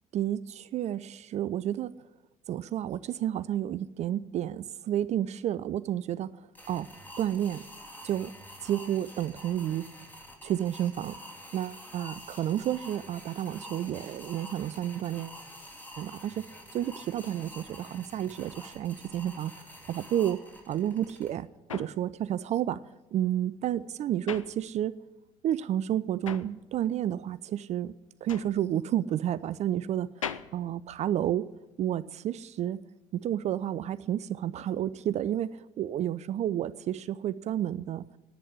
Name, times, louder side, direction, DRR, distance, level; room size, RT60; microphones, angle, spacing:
voice 1, 0.1-1.9 2.5-6.9 7.2-7.6 8.0-8.3 8.6-9.9 10.4-11.2 11.5-15.4 16.0-19.5 19.9-20.4 20.7-22.8 23.1-24.9 25.4-27.9 28.2-30.3 30.5-31.5 31.8-32.8 33.1-38.1, right 11 dB, 45° right, 17 dB, 0.4 m, -31 dB
sound 1, 6.5-21.3, equal, 10° left, 3.3 m, -47 dB
sound 2, 20.9-25.2 25.5-31.7, left 7 dB, 90° left, 0.4 m, -43 dB
10.5 x 8.2 x 9.7 m, 1.0 s
figure-of-eight pair, 50°, 16 cm